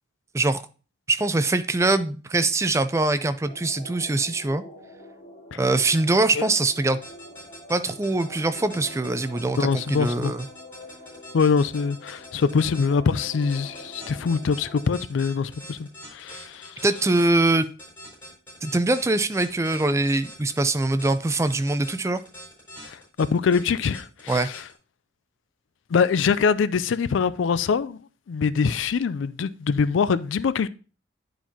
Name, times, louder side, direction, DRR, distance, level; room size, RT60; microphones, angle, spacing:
voice 1, 1.1-4.6 5.6-7.0 7.7-10.5 16.8-17.7 18.6-22.2 24.3-24.5, right 2 dB, 15° right, 0.3 m, -23 dB
sound 1, 3.5-15.0, left 1 dB, 45° left, 2.4 m, -45 dB
sound 2, 7.0-24.7, equal, 10° left, 4.2 m, -43 dB
voice 2, 9.6-10.3 11.3-16.7 22.8-24.6 25.9-28.0 28.3-30.7, left 5 dB, 80° left, 0.4 m, -24 dB
10.0 x 4.5 x 2.8 m
head